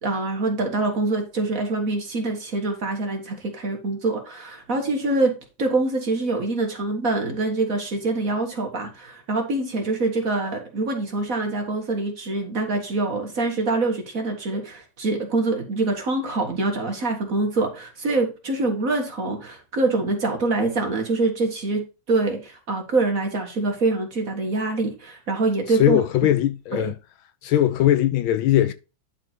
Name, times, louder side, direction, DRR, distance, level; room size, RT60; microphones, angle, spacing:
voice 1, 0.0-5.3 5.6-26.0 26.7-26.9, right 2 dB, 40° right, 2.0 m, -25 dB
voice 2, 25.7-26.9 27.4-28.7, left 12 dB, 75° left, 1.3 m, -20 dB
10.5 x 4.5 x 4.4 m
omnidirectional pair, 2.4 m